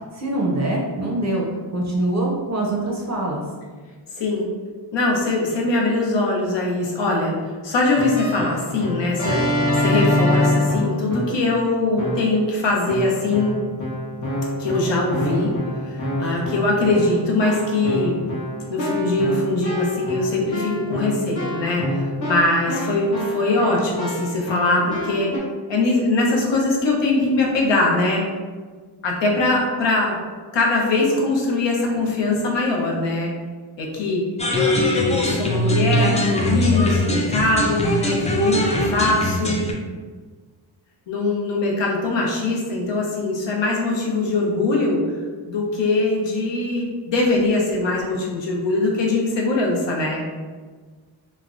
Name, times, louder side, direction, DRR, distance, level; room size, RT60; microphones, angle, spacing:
voice 1, 0.1-1.4 1.7-3.4, right 2 dB, 40° right, -2 dB, 0.5 m, -23 dB
voice 2, 4.1-4.5 4.9-13.5 14.6-15.5 15.9-18.1 18.7-21.9 22.3-25.3 25.7-28.2 29.0-30.2 30.5-33.3 33.8-34.2 34.5-39.6 41.1-45.0 45.5-50.2, left 2 dB, 70° left, -2 dB, 0.8 m, -22 dB
Keyboard (musical), 7.9-11.5 12.0-12.5 12.9-25.4, left 1 dB, 40° left, 0.8 m, -26 dB
Man plays a song on a leaf from a nearby bush, 34.4-39.7, left 1 dB, 15° left, 0.3 m, -22 dB
3.1 x 2.1 x 2.4 m, 1.5 s
cardioid pair, 90°, 46 cm